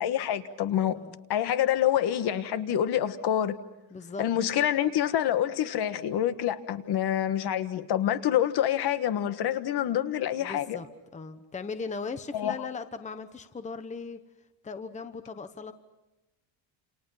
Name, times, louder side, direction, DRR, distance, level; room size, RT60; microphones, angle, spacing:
voice 1, 0.0-1.0 1.3-3.6 4.2-10.8 12.3-12.5, left 11 dB, 50° left, 10 dB, 1.5 m, -27 dB
voice 2, 3.9-4.2 10.3-10.9 11.1-14.2 14.6-15.7, left 4 dB, 15° left, 9 dB, 1.1 m, -38 dB
29.5 x 28.5 x 5.8 m, 1.0 s
cardioid pair, 150°, 48 cm